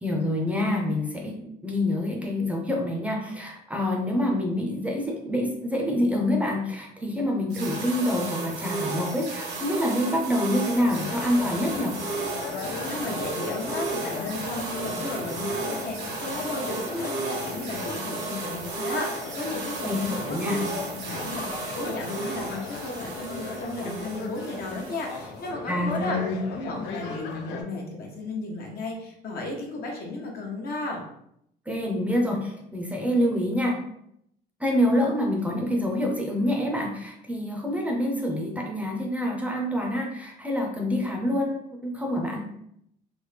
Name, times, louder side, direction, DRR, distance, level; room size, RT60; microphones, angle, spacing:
voice 1, 0.0-1.4 1.6-12.0 19.8-20.6 25.7-26.4 31.7-33.8 34.6-42.4, left 1 dB, 10° right, 0 dB, 0.6 m, -26 dB
sound 1, 7.5-25.5, right 3 dB, 80° right, 1.0 m, -34 dB
sound 2, 10.8-27.6, left 4 dB, 85° left, 0.5 m, -38 dB
voice 2, 12.9-26.2 26.5-31.0, left 2 dB, 65° left, 0 dB, 0.9 m, -34 dB
3.4 x 2.1 x 3.2 m, 0.74 s
cardioid pair, 110°, 17 cm